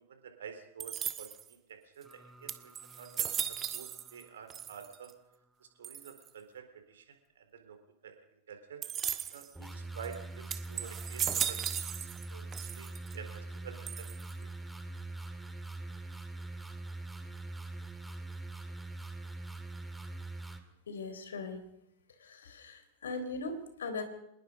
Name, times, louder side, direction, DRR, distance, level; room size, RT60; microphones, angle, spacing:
voice 1, 0.1-2.1 2.4-2.7 3.0-3.3 3.7-5.1 5.8-7.8 8.0-8.1 8.5-8.8 9.3-14.1 14.4-14.5, right 7 dB, 65° right, 7 dB, 4.2 m, -49 dB
sound 1, 0.8-1.5 2.1-2.2 2.5-4.2 4.5-5.1 5.8-6.3 8.8-9.5 10.0-10.1 10.5-12.3 12.5-13.1 13.9-14.4, right 9 dB, 25° right, 1.6 m, -36 dB
sound 2, 2.0-4.9 9.5-20.6, right 2 dB, 5° right, 2.6 m, -44 dB
voice 2, 20.9-21.6 22.2-24.0, left 3 dB, 65° left, 9 dB, 3.9 m, -39 dB
25.5 x 21.0 x 5.3 m, 0.81 s
figure-of-eight pair, 90°, 0 cm